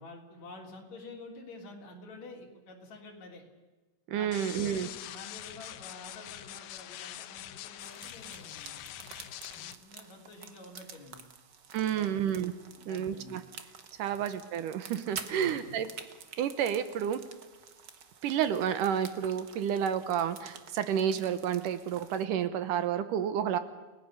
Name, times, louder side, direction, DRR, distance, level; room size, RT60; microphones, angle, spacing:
voice 1, 0.0-3.4 4.1-8.9 9.5-11.2 11.8-12.2 12.7-13.4 14.1-14.2 15.3-15.6, left 2 dB, 55° left, 0 dB, 4.7 m, -49 dB
voice 2, 4.1-4.9 11.7-12.5 12.9-13.4 14.0-15.9 16.4-17.2 18.2-23.6, right 9 dB, 75° right, 11 dB, 2.6 m, -30 dB
sound 1, 4.3-9.7, left 13 dB, 85° left, 2.6 m, -44 dB
sound 2, 7.8-22.2, right 6 dB, 50° right, 1.3 m, -49 dB
29.5 x 18.5 x 6.8 m, 1.2 s
omnidirectional pair, 3.8 m